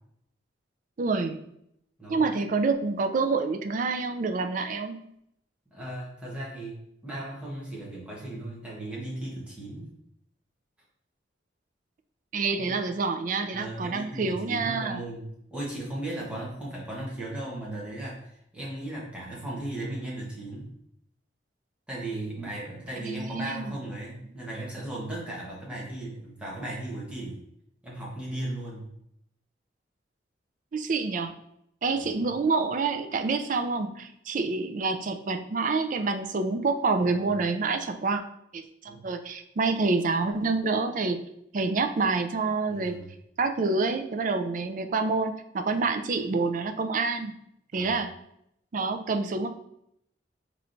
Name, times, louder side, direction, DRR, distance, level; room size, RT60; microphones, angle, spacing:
voice 1, 1.0-1.4 2.1-5.1 12.3-15.0 23.0-23.8 30.7-31.4 31.8-38.2 38.5-41.2 41.5-43.0 43.4-47.3 47.7-48.1 48.7-49.5, right 4 dB, 45° right, 7 dB, 0.4 m, -27 dB
voice 2, 5.7-9.9 12.6-12.7 13.5-20.7 21.9-27.4 27.8-28.9 32.0-32.3 38.9-39.0 42.7-43.1 47.7-48.0, right 1 dB, 5° right, -6 dB, 1.1 m, -36 dB
5.6 x 3.1 x 2.6 m, 0.76 s
head